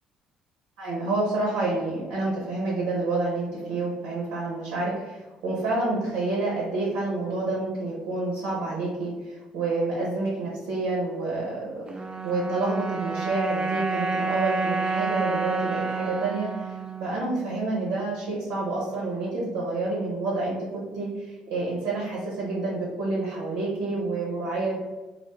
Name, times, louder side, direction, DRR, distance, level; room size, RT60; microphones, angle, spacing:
voice 1, 0.8-11.9 12.2-24.7, right 2 dB, 70° right, -4 dB, 0.6 m, -28 dB
sound 1, 11.9-18.3, right 4 dB, 20° right, 0.3 m, -30 dB
2.2 x 2.0 x 3.0 m, 1.1 s
hypercardioid pair, 50°, 4 cm